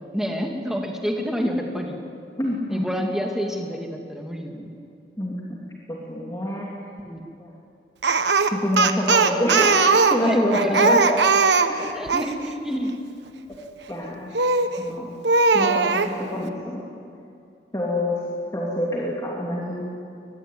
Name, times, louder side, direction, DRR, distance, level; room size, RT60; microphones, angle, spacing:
voice 1, 0.1-2.0 2.7-4.7 7.1-7.2 10.2-11.0 11.8-13.0, equal, 5° right, 1 dB, 2.5 m, -28 dB
voice 2, 2.4-2.8 5.2-5.6 5.9-6.7 7.4-7.5 8.5-11.2 11.7-11.8 13.9-14.3 14.8-15.1 15.5-16.8 17.7-18.2 18.5-19.8, left 1 dB, 20° left, -3 dB, 3.0 m, -26 dB
Speech, 8.0-12.3 14.4-14.8 15.2-16.1, right 4 dB, 75° right, 1.2 m, -19 dB
23.0 x 21.0 x 9.5 m, 2.4 s
head